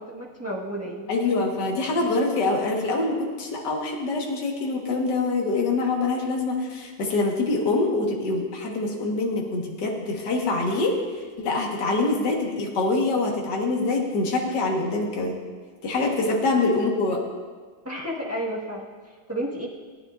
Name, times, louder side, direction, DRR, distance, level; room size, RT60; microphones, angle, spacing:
voice 1, 0.0-1.1 16.3-16.4 17.8-19.7, equal, 10° right, -3 dB, 1.3 m, -32 dB
voice 2, 1.1-11.0 11.4-15.4 15.8-17.2, left 3 dB, 60° left, 0 dB, 2.1 m, -25 dB
19.0 x 9.7 x 2.5 m, 1.5 s
omnidirectional pair, 2.1 m